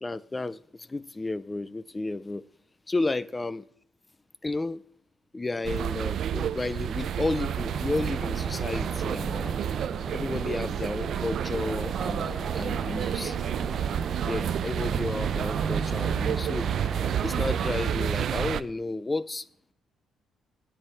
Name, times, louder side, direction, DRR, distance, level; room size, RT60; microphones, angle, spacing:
voice 1, 0.0-2.4 2.9-3.6 4.4-4.8 5.3-9.6 10.1-13.4 14.2-16.7 17.2-19.5, left 2 dB, 15° left, 0.4 m, -32 dB
sound 1, 5.6-18.6, right 9 dB, 55° right, 0.4 m, -29 dB
sound 2, 7.6-18.1, right 1 dB, 5° right, 3.3 m, -39 dB
9.9 x 9.2 x 4.7 m
cardioid pair, 150°, 0 cm